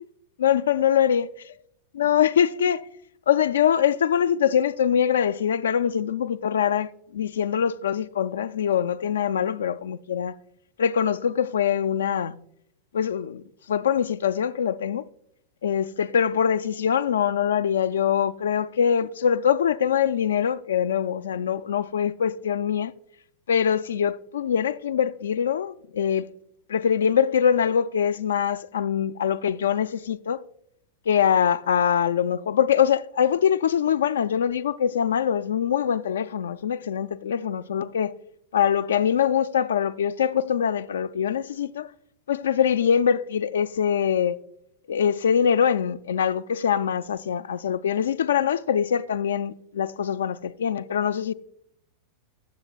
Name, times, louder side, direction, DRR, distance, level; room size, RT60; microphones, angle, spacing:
voice 1, 0.4-1.3 1.9-2.8 3.3-10.3 10.8-12.3 12.9-13.4 13.7-15.0 15.6-22.9 23.5-26.3 26.7-30.4 31.1-38.1 38.5-41.9 42.3-44.4 44.9-51.3, left 8 dB, 65° left, 0.3 m, -23 dB
15.5 x 7.2 x 2.3 m
figure-of-eight pair, 90°, 0 cm